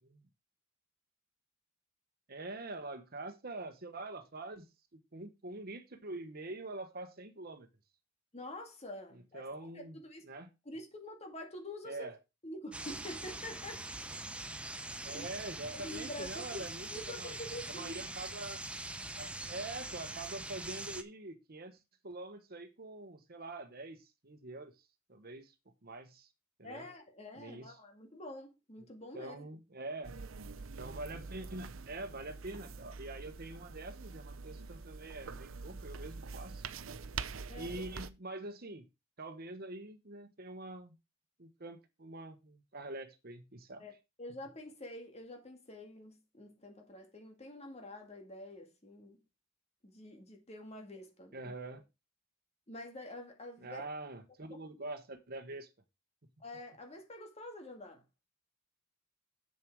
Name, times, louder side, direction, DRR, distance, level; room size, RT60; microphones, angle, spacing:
voice 1, 2.3-4.7 4.9-7.7 9.1-10.5 11.8-12.2 15.0-17.4 17.7-18.6 19.2-21.8 22.0-24.7 25.1-25.5 25.8-26.3 26.6-26.8 27.4-27.7 28.8-28.9 29.1-30.2 30.8-36.7 37.5-38.9 39.2-40.9 41.4-43.8 51.3-51.8 53.6-55.7, right 2 dB, 50° right, 1.3 m, -45 dB
voice 2, 8.3-10.3 10.7-12.1 12.4-13.9 15.1-15.3 15.7-17.9 26.6-29.5 37.5-37.8 43.8-43.9 44.2-49.2 49.8-51.5 52.7-53.8 54.5-54.6 56.4-58.0, left 1 dB, 35° left, 2.1 m, -47 dB
sound 1, 12.7-21.0, right 2 dB, 5° right, 0.8 m, -43 dB
sound 2, 30.0-38.1, right 4 dB, 85° right, 0.7 m, -45 dB
7.8 x 7.3 x 4.7 m
head